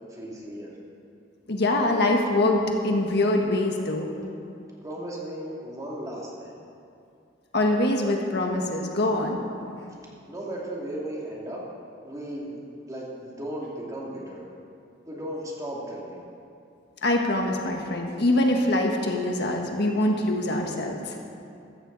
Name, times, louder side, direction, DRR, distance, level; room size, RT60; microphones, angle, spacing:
voice 1, 0.1-0.7 4.8-6.6 10.3-11.6 12.0-12.6 12.9-14.4 15.1-16.2, right 1 dB, 20° right, -4 dB, 2.5 m, -35 dB
voice 2, 1.5-4.1 7.5-9.4 17.0-21.2, left 1 dB, 65° left, 2 dB, 1.5 m, -24 dB
15.0 x 13.5 x 4.1 m, 2.5 s
head